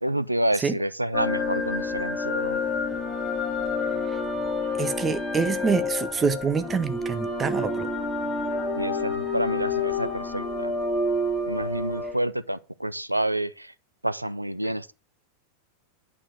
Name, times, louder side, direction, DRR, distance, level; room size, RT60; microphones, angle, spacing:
voice 1, 0.0-2.6 8.8-10.7 11.5-13.7 14.0-14.9, right 1 dB, 85° right, 0.4 m, -28 dB
sound 1, 1.1-12.1, left 3 dB, 15° left, 2.7 m, -28 dB
voice 2, 4.8-7.9, right 5 dB, 20° right, 0.9 m, -26 dB
8.8 x 4.9 x 4.9 m
figure-of-eight pair, 90°, 0 cm